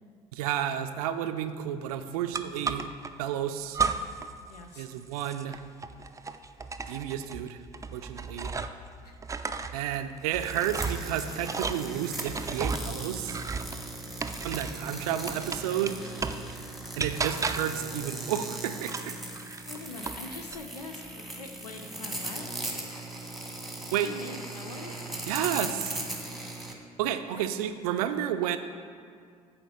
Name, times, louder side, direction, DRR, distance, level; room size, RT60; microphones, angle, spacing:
voice 1, 0.3-2.9 3.2-3.8 4.8-5.6 6.9-7.6 7.9-8.5 9.7-13.4 14.4-16.0 17.0-19.2 23.9-24.1 25.3-26.1 27.0-28.6, right 10 dB, 70° right, 9 dB, 0.4 m, -31 dB
sound 1, 2.3-3.1 3.7-4.3 4.6-8.9 9.2-14.9 15.3-16.5 17.0-17.8 18.8-20.2 20.5-21.1, right 4 dB, 15° right, 0.4 m, -34 dB
voice 2, 4.5-4.9 9.0-9.2 14.1-14.4 19.6-22.4 22.7-23.0 23.9-25.1 27.3-27.5, left 3 dB, 90° left, 4 dB, 0.5 m, -44 dB
sound 2, 10.3-26.7, right 2 dB, ahead, 1.3 m, -39 dB
8.5 x 4.5 x 6.4 m, 2.1 s
figure-of-eight pair, 50°, 20 cm